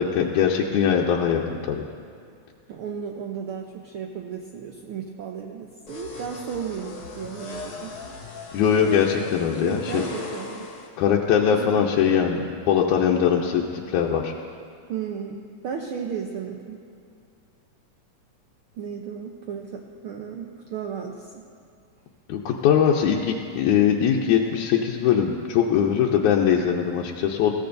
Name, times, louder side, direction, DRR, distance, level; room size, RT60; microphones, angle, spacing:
voice 1, 0.0-1.4 1.7-1.8 8.5-10.0 11.0-13.6 13.9-14.3 22.3-27.5, left 8 dB, 85° left, -2 dB, 2.2 m, -21 dB
voice 2, 2.7-8.2 9.6-10.7 11.5-11.7 14.9-16.9 18.7-21.5, right 7 dB, 80° right, 2 dB, 1.2 m, -34 dB
sound 1, 5.9-10.9, left 3 dB, 50° left, 2.5 m, -38 dB
21.0 x 16.0 x 2.6 m, 2.3 s
omnidirectional pair, 3.3 m